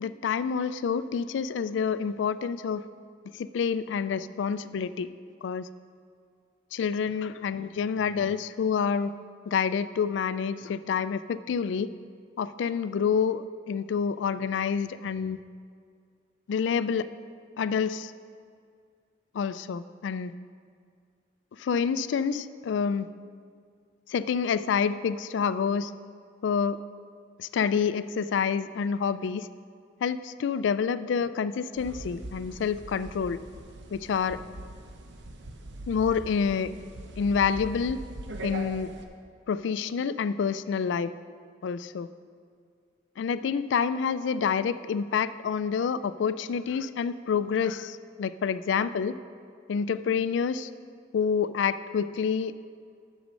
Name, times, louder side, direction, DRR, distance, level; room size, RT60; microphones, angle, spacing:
voice 1, 0.0-2.8 3.3-5.1 5.4-5.7 6.7-9.1 9.5-11.9 12.4-15.4 16.5-17.1 17.6-18.1 19.3-20.3 21.6-23.1 24.1-25.9 26.4-26.8 27.4-29.5 30.0-33.4 33.9-34.4 35.9-36.7 37.2-38.0 38.4-38.9 39.5-41.1 41.6-42.1 43.2-49.2 49.7-50.7 51.1-52.6, left 6 dB, 80° left, 15 dB, 0.3 m, -28 dB
sound 1, 31.8-39.0, right 2 dB, 75° right, 0.8 m, -42 dB
8.2 x 6.3 x 6.1 m, 2.2 s
head